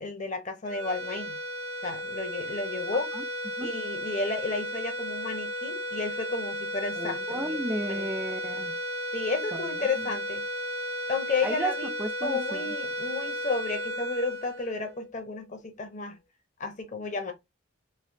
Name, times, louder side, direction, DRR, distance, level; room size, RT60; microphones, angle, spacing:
voice 1, 0.0-1.4 1.8-3.1 3.6-7.6 7.9-8.1 9.1-10.4 11.1-11.9 12.2-16.2 16.6-17.3, left 4 dB, 35° left, 0.9 m, -32 dB
sound 1, 0.6-15.2, equal, 90° right, 1.0 m, -34 dB
voice 2, 7.0-8.8 9.5-9.6 10.0-10.1 11.4-11.7 12.0-12.7, right 1 dB, 10° right, 0.3 m, -33 dB
3.4 x 2.7 x 2.7 m
head